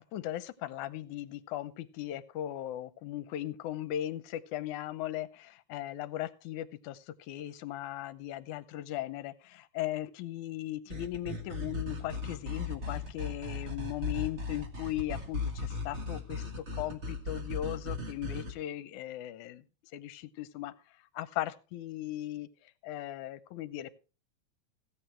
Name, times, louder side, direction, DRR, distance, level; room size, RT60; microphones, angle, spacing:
voice 1, 0.0-19.6 19.9-23.9, left 13 dB, 80° left, 2.2 m, -38 dB
sound 1, 10.9-18.5, left 3 dB, 30° right, 1.3 m, -37 dB
16.0 x 8.6 x 4.5 m
omnidirectional pair, 3.5 m